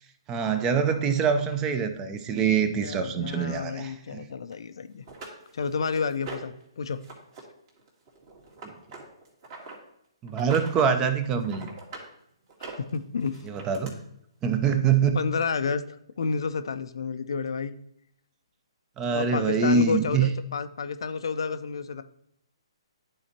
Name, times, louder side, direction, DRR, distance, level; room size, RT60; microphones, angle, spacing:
voice 1, 0.3-4.2 8.6-8.7 10.2-11.7 13.5-13.9 14.4-15.2 19.0-20.3, right 6 dB, 20° right, 9 dB, 0.6 m, -24 dB
voice 2, 2.6-5.0 5.5-7.0 12.9-13.5 15.1-17.7 19.1-22.0, left 5 dB, 65° left, 11 dB, 0.5 m, -30 dB
sound 1, 4.5-4.6 5.1-6.6 7.0-7.4 7.7-9.8 10.3-10.9 11.2-12.1 12.5-13.9 14.9-15.0 15.4-15.5, right 3 dB, 40° right, 2.1 m, -42 dB
12.0 x 4.3 x 2.9 m, 0.74 s
figure-of-eight pair, 135°, 3 cm